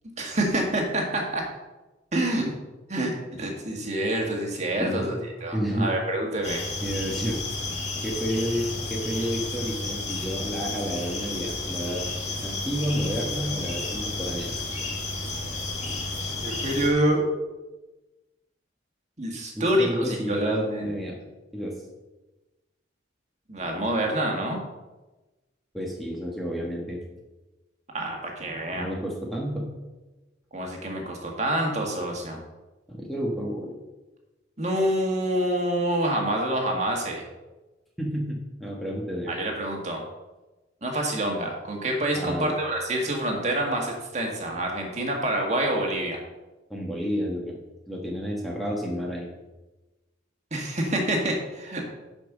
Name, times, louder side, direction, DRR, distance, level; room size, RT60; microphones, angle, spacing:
voice 1, 0.2-1.5 2.1-2.5 2.9-6.6 16.4-17.3 19.2-20.9 23.5-24.6 27.9-28.9 30.5-32.4 34.6-37.2 39.3-40.0 40.8-46.2 50.5-51.8, right 1 dB, 35° right, 1 dB, 1.8 m, -27 dB
voice 2, 4.8-5.2 5.5-5.9 6.8-7.4 8.0-12.0 12.4-14.5 19.5-21.2 21.5-21.8 25.7-27.0 28.7-29.7 32.9-33.7 38.0-39.3 42.1-42.5 46.7-47.6 47.9-49.3, equal, ahead, -3 dB, 1.3 m, -30 dB
sound 1, 6.4-16.9, left 2 dB, 35° left, 2.1 m, -32 dB
10.5 x 5.3 x 6.1 m, 1.1 s
head